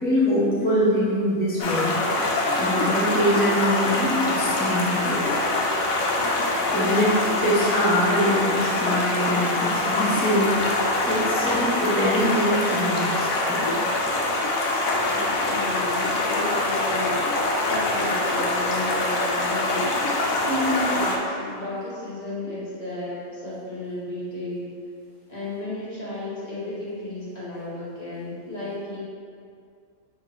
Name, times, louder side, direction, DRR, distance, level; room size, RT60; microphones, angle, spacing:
voice 1, 0.0-2.0 2.6-5.3 6.7-10.7 11.0-13.8 15.0-15.2 15.4-15.5, equal, 10° left, -10 dB, 0.5 m, -24 dB
Stream, 1.6-21.2, left 2 dB, 90° left, 1.0 m, -24 dB
voice 2, 7.3-7.9 15.3-17.2 17.6-19.9 20.4-24.7 25.3-29.0, left 1 dB, 30° left, -10 dB, 1.2 m, -33 dB
5.4 x 2.8 x 3.2 m, 2.3 s
omnidirectional pair, 1.4 m